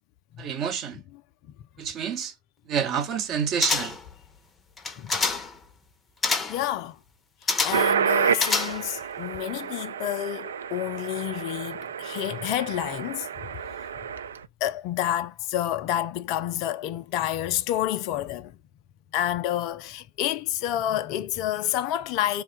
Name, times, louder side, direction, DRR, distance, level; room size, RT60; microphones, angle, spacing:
voice 1, 0.4-1.0 1.8-2.3 2.7-4.0, right 7 dB, 35° right, 0.9 m, -28 dB
sound 1, 3.6-4.1 4.8-5.6 6.2-6.6 7.5-7.9 8.3-9.0 9.3-9.4, left 4 dB, 15° left, 0.7 m, -27 dB
voice 2, 6.5-7.0 7.4-13.3 14.6-18.6 19.1-22.4, left 12 dB, 40° left, 0.3 m, -29 dB
sound 2, 7.7-14.4, right 7 dB, 65° right, 0.3 m, -30 dB
Meow, 8.0-8.8, left 1 dB, 85° right, 1.5 m, -36 dB
3.4 x 2.2 x 4.0 m
figure-of-eight pair, 90°, 0 cm